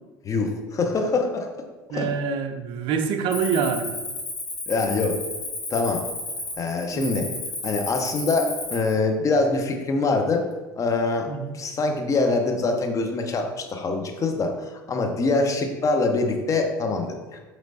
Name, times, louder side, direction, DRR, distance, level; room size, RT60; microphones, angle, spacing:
voice 1, 0.2-1.5 1.9-2.1 4.7-5.2 5.7-6.0 6.6-7.3 7.6-10.5 10.8-11.3 11.5-17.4, left 3 dB, 30° left, 4 dB, 0.7 m, -24 dB
voice 2, 1.9-3.9 6.9-7.1 11.3-11.5, right 6 dB, 50° right, 6 dB, 0.5 m, -26 dB
Cricket, 3.3-8.9, left 2 dB, 65° left, 1.5 m, -33 dB
5.1 x 3.1 x 2.6 m, 1.3 s
figure-of-eight pair, 70°, 11 cm